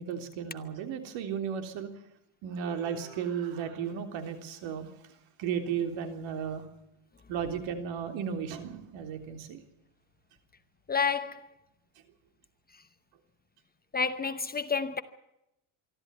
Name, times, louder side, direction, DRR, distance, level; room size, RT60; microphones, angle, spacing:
voice 1, 0.0-1.9 2.4-4.9 5.4-6.6 7.3-9.6, right 7 dB, 65° right, 3.6 m, -34 dB
voice 2, 10.9-11.5 13.9-15.0, left 5 dB, 20° left, 0.9 m, -29 dB
24.5 x 13.5 x 9.3 m
supercardioid pair, 125°, 50 cm